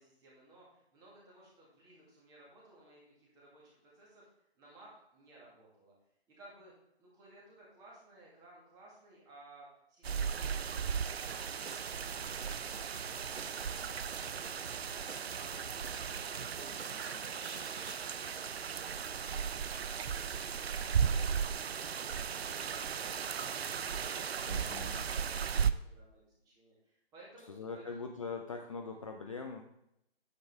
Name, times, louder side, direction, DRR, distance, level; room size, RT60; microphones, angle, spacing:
voice 1, 0.0-4.3 4.6-5.9 6.3-6.7 7.0-16.6 16.9-19.4 19.7-28.0, right 1 dB, 10° right, -4 dB, 2.0 m, -59 dB
sound 1, 10.0-25.7, right 7 dB, 70° right, 0.6 m, -36 dB
sound 2, 11.2-18.1, right 4 dB, 85° right, 1.0 m, -49 dB
voice 2, 24.5-25.1 27.5-29.6, left 4 dB, 30° left, 3 dB, 0.5 m, -42 dB
9.0 x 7.7 x 3.5 m, 0.79 s
figure-of-eight pair, 155°, 32 cm